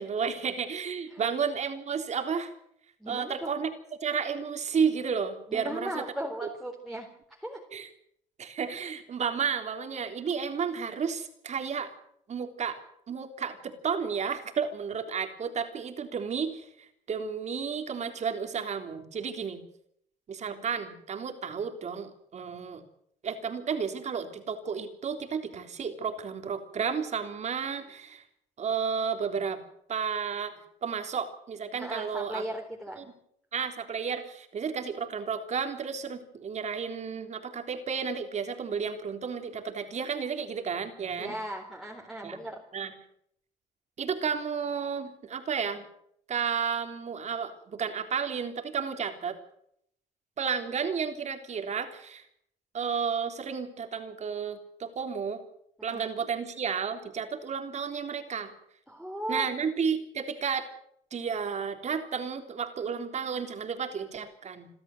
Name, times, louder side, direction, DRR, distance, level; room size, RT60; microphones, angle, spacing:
voice 1, 0.0-2.5 3.1-3.7 4.0-6.0 6.4-6.5 7.7-7.9 8.4-11.9 12.3-12.8 13.1-19.6 20.3-22.8 23.2-28.2 28.6-29.6 29.9-32.4 33.0-33.1 33.5-41.4 42.2-42.4 42.7-42.9 44.0-45.8 46.3-49.4 50.4-52.2 52.7-55.4 55.8-58.5 59.3-60.7 61.1-64.7, right 6 dB, 45° right, 6 dB, 3.6 m, -32 dB
voice 2, 3.0-3.5 5.5-7.6 31.7-33.1 41.2-42.6 55.8-56.1 58.9-59.5, right 1 dB, ahead, -2 dB, 3.9 m, -37 dB
28.0 x 13.0 x 7.9 m, 0.71 s
cardioid pair, 110°, 17 cm